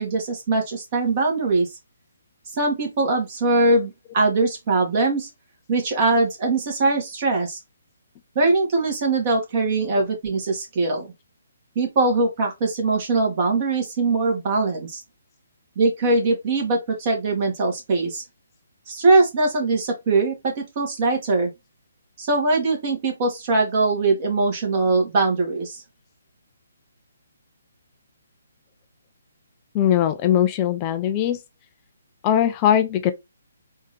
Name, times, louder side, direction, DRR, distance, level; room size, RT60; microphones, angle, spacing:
voice 1, 0.0-1.7 2.5-5.3 5.7-7.6 8.3-11.1 11.7-15.0 15.7-18.2 18.9-21.5 22.2-25.8, right 3 dB, 35° right, 1.5 m, -21 dB
voice 2, 29.7-31.4 32.2-33.1, left 10 dB, 25° left, 0.4 m, -20 dB
3.6 x 2.7 x 3.2 m
figure-of-eight pair, 135°, 0 cm